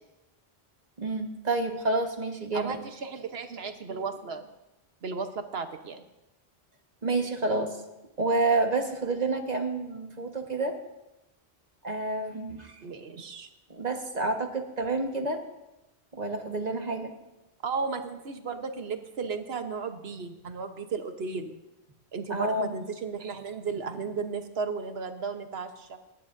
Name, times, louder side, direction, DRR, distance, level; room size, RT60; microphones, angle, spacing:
voice 1, 1.0-2.8 7.0-7.7 8.2-10.7 11.8-12.8 13.7-15.4 16.1-17.1 22.3-22.8, right 2 dB, 40° right, 3 dB, 1.4 m, -29 dB
voice 2, 2.5-4.5 5.0-6.0 12.8-13.5 17.6-21.6 22.1-26.0, right 5 dB, 70° right, 7 dB, 1.3 m, -34 dB
24.5 x 11.0 x 2.6 m, 0.95 s
omnidirectional pair, 1.1 m